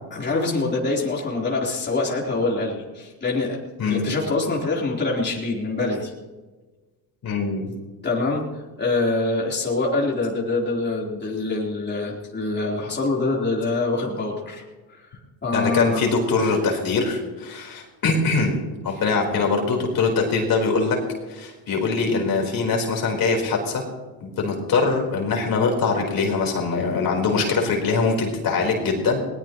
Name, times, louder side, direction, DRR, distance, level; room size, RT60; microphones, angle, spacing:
voice 1, 0.1-3.6 3.9-6.1 8.0-8.4 8.8-14.6 14.9-16.0 18.9-19.0, left 3 dB, 25° left, -3 dB, 3.8 m, -25 dB
voice 2, 7.2-7.7 15.5-18.6 18.8-21.0 21.3-23.8 24.2-29.2, left 4 dB, 50° left, 0 dB, 4.2 m, -22 dB
20.5 x 19.0 x 3.0 m, 1.2 s
supercardioid pair, 100°, 44 cm